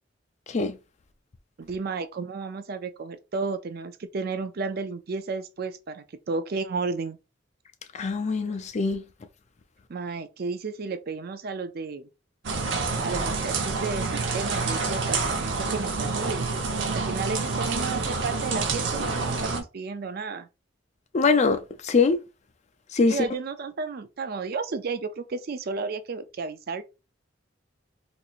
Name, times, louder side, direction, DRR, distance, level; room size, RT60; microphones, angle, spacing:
voice 1, 1.6-7.2 9.9-12.1 13.0-16.5 16.9-20.5 23.1-26.8, right 4 dB, 50° right, 0.4 m, -33 dB
voice 2, 7.9-9.0 21.1-22.2 22.9-23.2, left 4 dB, 35° left, 0.4 m, -23 dB
sound 1, 12.4-19.6, right 4 dB, 70° right, 0.8 m, -28 dB
4.2 x 2.8 x 2.5 m
head